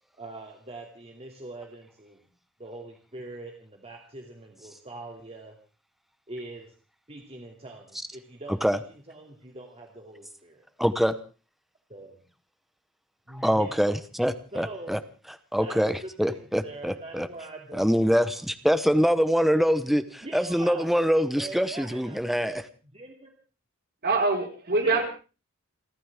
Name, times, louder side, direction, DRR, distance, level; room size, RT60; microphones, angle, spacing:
voice 1, 0.2-2.3 2.6-5.6 6.3-6.7 7.1-8.6 9.1-10.6 11.9-12.2 13.3-13.8 14.5-15.0 15.6-18.2 20.2-20.9 21.4-22.6 22.9-23.3 24.8-25.0, right 2 dB, 30° right, 1 dB, 2.6 m, -43 dB
voice 2, 10.8-11.2 13.3-15.0 15.5-17.3 17.7-22.6, equal, ahead, 11 dB, 0.8 m, -24 dB
voice 3, 24.0-25.0, right 3 dB, 50° right, 2 dB, 4.5 m, -24 dB
29.5 x 13.0 x 3.6 m, 0.36 s
head